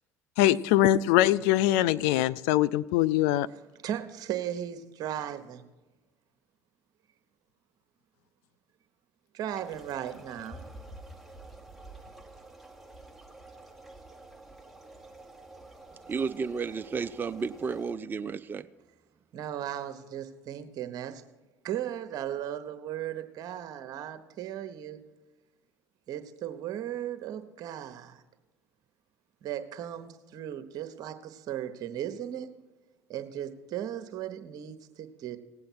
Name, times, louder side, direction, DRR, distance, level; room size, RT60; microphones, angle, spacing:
voice 1, 0.4-3.5, left 14 dB, 70° left, 17 dB, 0.3 m, -23 dB
voice 2, 3.5-5.6 9.3-10.6 19.3-21.2 21.6-25.0 26.1-28.2 29.4-32.5 33.1-35.4, right 11 dB, 55° right, 9 dB, 1.0 m, -36 dB
sound 1, 9.5-17.9, right 2 dB, ahead, 1.2 m, -49 dB
voice 3, 16.1-18.7, right 5 dB, 25° right, 11 dB, 0.4 m, -32 dB
18.0 x 7.7 x 4.4 m, 1.2 s
hypercardioid pair, 65°, 8 cm